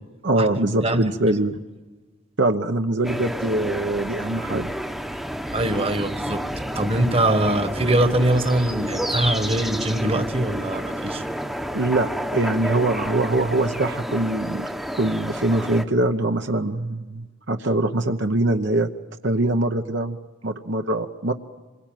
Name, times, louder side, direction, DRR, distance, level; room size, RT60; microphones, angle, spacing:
voice 1, 0.2-1.6 2.4-4.7 11.7-14.7 14.9-18.9 19.2-20.2 20.4-21.3, right 2 dB, 60° right, 5 dB, 1.0 m, -23 dB
voice 2, 0.8-1.4 5.5-6.4 6.7-11.2, right 1 dB, 30° right, 9 dB, 1.4 m, -22 dB
sound 1, 3.0-15.8, equal, ahead, 1.0 m, -30 dB
27.0 x 22.5 x 9.2 m, 1.2 s
head